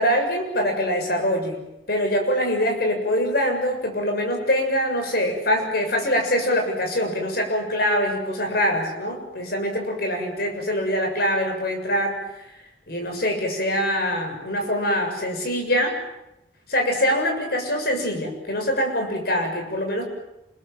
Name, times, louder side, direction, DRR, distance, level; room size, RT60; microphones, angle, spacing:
voice 1, 0.0-1.6 1.9-12.2 12.9-16.0 16.7-20.0, equal, 60° left, 3 dB, 7.2 m, -24 dB
28.0 x 22.0 x 7.7 m, 0.88 s
head